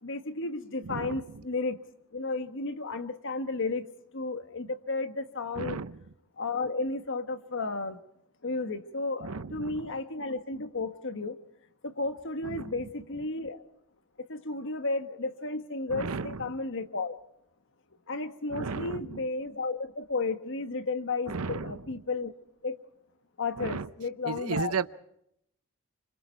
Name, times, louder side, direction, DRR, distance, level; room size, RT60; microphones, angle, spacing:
voice 1, 0.0-1.8 2.1-3.8 4.1-5.8 6.4-8.0 8.4-11.4 11.8-13.6 14.3-17.2 18.1-22.3 22.6-22.8 23.4-24.7, left 3 dB, 60° left, 9 dB, 1.5 m, -33 dB
voice 2, 0.8-1.2 5.6-6.0 9.2-9.9 12.4-12.7 15.9-16.4 18.5-19.0 21.3-21.8 23.6-23.9 24.2-24.9, right 5 dB, 85° right, 14 dB, 0.7 m, -34 dB
27.5 x 25.5 x 4.6 m, 0.76 s
head